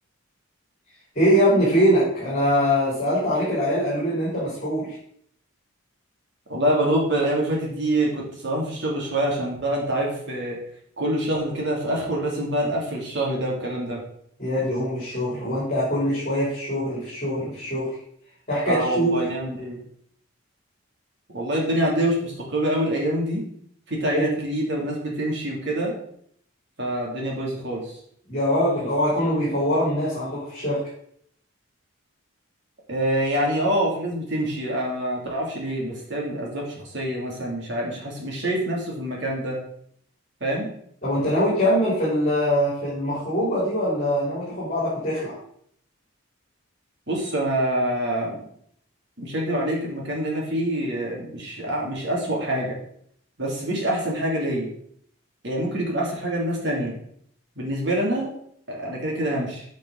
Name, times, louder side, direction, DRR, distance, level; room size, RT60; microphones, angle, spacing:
voice 1, 1.1-5.0 14.4-17.9 18.5-19.1 24.1-24.2 28.3-30.8 41.0-45.4, equal, 35° left, -9 dB, 3.6 m, -23 dB
voice 2, 6.5-10.6 11.0-14.0 18.6-19.8 21.3-23.4 23.9-26.0 26.8-27.9 32.9-39.6 40.4-40.7 47.1-48.4 49.2-52.7 53.4-54.7 55.4-56.9 57.6-58.3 58.7-59.6, right 1 dB, 55° right, -2 dB, 2.7 m, -26 dB
9.8 x 5.3 x 3.9 m, 0.66 s
head